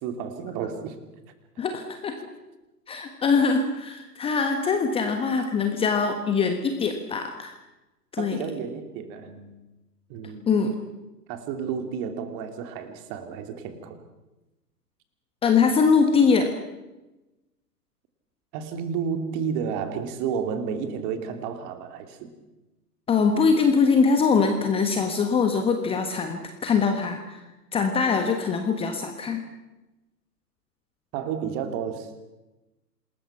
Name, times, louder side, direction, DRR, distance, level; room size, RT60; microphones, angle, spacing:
voice 1, 0.0-1.0 8.2-9.6 10.1-10.4 11.3-14.0 18.5-22.3 31.1-32.2, right 7 dB, 30° right, 7 dB, 2.8 m, -31 dB
voice 2, 1.6-2.2 2.9-7.5 8.1-8.4 10.5-10.7 15.4-16.5 23.1-27.4 27.7-29.4, left 5 dB, 10° left, 6 dB, 1.3 m, -22 dB
27.0 x 20.5 x 6.0 m, 1.0 s
figure-of-eight pair, 125°, 49 cm